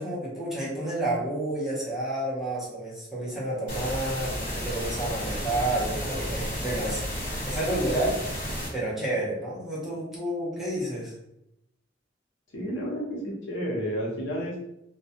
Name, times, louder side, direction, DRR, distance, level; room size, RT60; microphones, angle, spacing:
voice 1, 0.0-8.2 8.7-11.1, right 1 dB, ahead, -8 dB, 0.7 m, -30 dB
sound 1, 3.7-8.7, equal, 45° left, 1.1 m, -32 dB
voice 2, 12.5-14.6, equal, 85° left, -4 dB, 0.8 m, -31 dB
2.2 x 2.2 x 2.8 m, 0.83 s
head